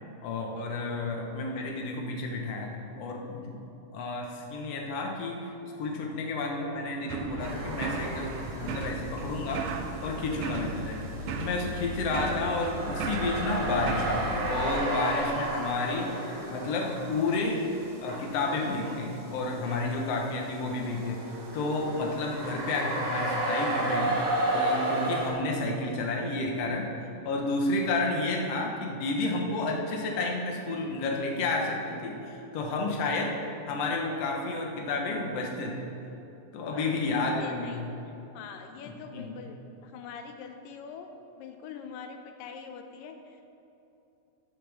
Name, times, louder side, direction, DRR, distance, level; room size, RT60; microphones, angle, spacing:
voice 1, 0.2-3.6 3.9-5.5 5.8-9.7 10.0-11.0 11.4-17.7 18.0-24.2 24.5-35.9 36.5-37.9 39.1-39.3, left 2 dB, 60° left, 0 dB, 2.0 m, -31 dB
sound 1, 7.1-14.7, right 3 dB, 80° right, 2.3 m, -36 dB
sound 2, 7.4-8.9 9.2-25.3, right 1 dB, 45° right, 1.9 m, -33 dB
voice 2, 36.7-37.8 38.3-39.6 39.8-41.1 41.4-43.4, left 6 dB, 85° left, 6 dB, 2.3 m, -43 dB
14.5 x 10.0 x 3.5 m, 2.8 s
omnidirectional pair, 3.9 m